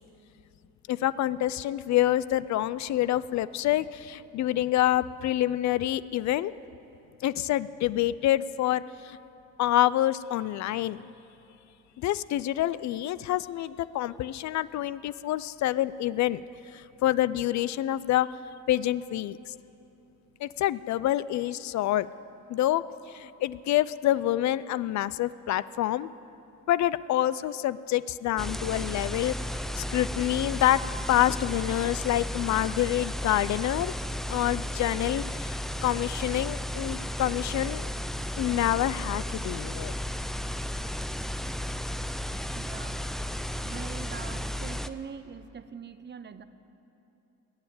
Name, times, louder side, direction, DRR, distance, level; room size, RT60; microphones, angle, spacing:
voice 1, 0.9-6.5 7.2-9.2 9.6-11.1 12.0-16.4 16.7-18.3 18.7-19.5 20.4-22.1 22.5-26.1 26.7-29.3 29.8-30.8 31.1-33.9 34.3-35.6 35.8-37.9 38.4-39.9, left 13 dB, 65° left, 17 dB, 0.4 m, -27 dB
sound 1, 28.4-44.9, left 1 dB, ahead, 0.5 m, -34 dB
voice 2, 42.5-43.0 43.6-46.4, right 6 dB, 35° right, 12 dB, 0.8 m, -42 dB
20.0 x 7.2 x 9.3 m, 2.9 s
cardioid pair, 90°, 30 cm